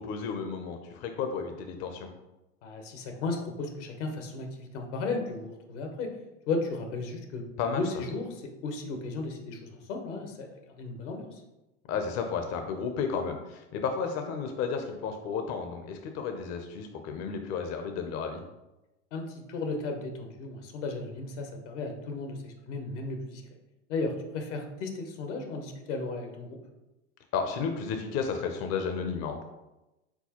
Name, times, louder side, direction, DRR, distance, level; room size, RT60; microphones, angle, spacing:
voice 1, 0.0-2.1 7.6-7.8 11.9-18.4 27.3-29.4, left 5 dB, 45° left, 5 dB, 0.6 m, -32 dB
voice 2, 2.6-6.1 6.5-7.4 7.7-11.4 19.1-23.4 23.9-26.6, left 3 dB, 75° left, 4 dB, 1.0 m, -35 dB
4.5 x 3.9 x 2.9 m, 0.98 s
hypercardioid pair, 90°, 36 cm